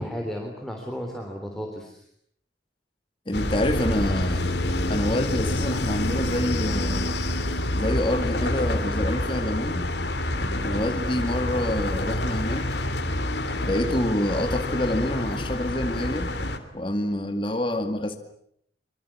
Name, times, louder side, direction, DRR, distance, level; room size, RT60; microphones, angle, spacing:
voice 1, 0.0-2.0, equal, ahead, 1 dB, 3.6 m, -33 dB
sound 1, 3.3-16.6, left 1 dB, 60° left, 3.0 m, -27 dB
voice 2, 3.3-4.5 4.9-7.1 7.7-9.9 10.6-12.9 13.6-16.3 16.7-18.2, left 1 dB, 30° left, 6 dB, 2.2 m, -27 dB
25.5 x 25.0 x 8.7 m, 0.70 s
head